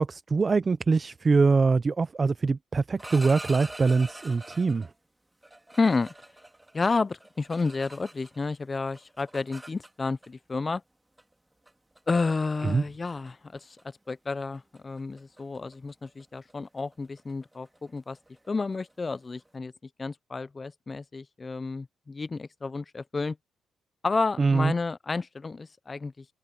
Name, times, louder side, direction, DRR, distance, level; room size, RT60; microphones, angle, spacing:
voice 1, 0.0-4.9 12.6-12.8 24.4-24.7, right 4 dB, 30° right, 0.5 m, -23 dB
sound 1, 3.0-4.9 5.4-8.5 8.7-10.3 11.2-11.3 11.7-12.0 12.4-12.7 13.0-13.3 13.6-13.8 14.1-19.5, right 1 dB, 10° right, 2.3 m, -45 dB
voice 2, 5.8-6.1 6.7-10.8 12.1-18.2 18.5-19.7 20.0-23.4 24.0-26.3, left 4 dB, 30° left, 0.4 m, -31 dB
cardioid pair, 90°, 0 cm